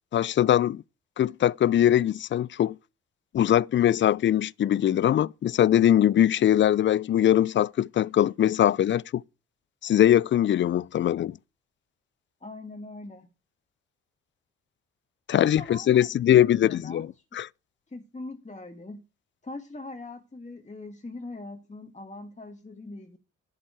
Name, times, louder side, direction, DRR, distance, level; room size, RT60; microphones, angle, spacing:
voice 1, 0.1-0.8 1.2-2.8 3.3-9.2 9.8-11.3 15.3-17.1 17.3-17.5, left 11 dB, 35° left, 0.4 m, -21 dB
voice 2, 12.4-13.3 15.4-17.1 17.9-19.0 19.4-23.2, left 2 dB, 20° left, 1.7 m, -42 dB
11.5 x 7.3 x 4.9 m
hypercardioid pair, 45°, 32 cm